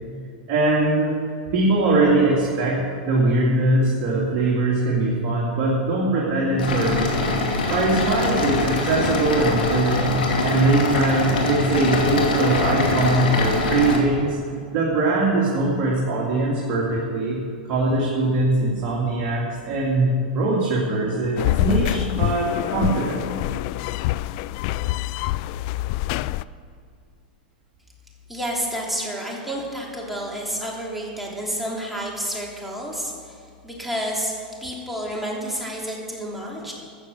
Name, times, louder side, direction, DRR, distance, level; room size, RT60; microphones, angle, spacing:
voice 1, 0.5-1.1 1.5-2.8 3.0-7.4 7.7-14.4 14.7-17.4 17.6-23.2, right 2 dB, 45° right, -5 dB, 3.0 m, -21 dB
sound 1, 6.6-14.0, left 3 dB, 80° left, 2.5 m, -23 dB
sound 2, 21.4-26.4, left 17 dB, 50° left, 0.3 m, -25 dB
voice 2, 28.3-36.7, equal, 5° right, -3 dB, 3.1 m, -30 dB
13.5 x 6.6 x 8.1 m, 2.3 s
hypercardioid pair, 120°, 5 cm